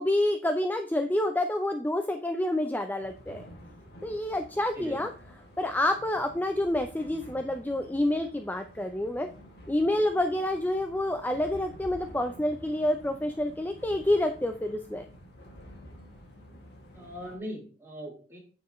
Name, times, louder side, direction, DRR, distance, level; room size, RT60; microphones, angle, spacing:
voice 1, 0.0-3.4 4.0-5.1 5.6-9.3 9.7-15.0, left 1 dB, 10° left, 6 dB, 0.6 m, -28 dB
sound 1, 3.0-17.4, equal, 65° left, 3.3 m, -50 dB
voice 2, 4.8-5.1 16.9-18.4, equal, 15° right, -4 dB, 4.2 m, -40 dB
9.8 x 7.2 x 3.1 m, 0.38 s
head